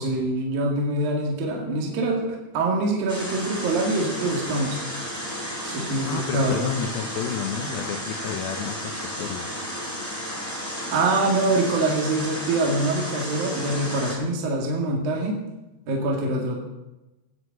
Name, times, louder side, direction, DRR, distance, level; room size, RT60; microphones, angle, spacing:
voice 1, 0.0-4.8 5.6-6.7 10.9-15.4 15.9-16.6, right 2 dB, 55° right, -1 dB, 3.6 m, -24 dB
sound 1, 3.1-14.1, equal, 5° left, 2.7 m, -33 dB
voice 2, 6.0-9.6, left 7 dB, 75° left, 6 dB, 2.3 m, -31 dB
16.5 x 6.7 x 7.9 m, 0.99 s
omnidirectional pair, 5.4 m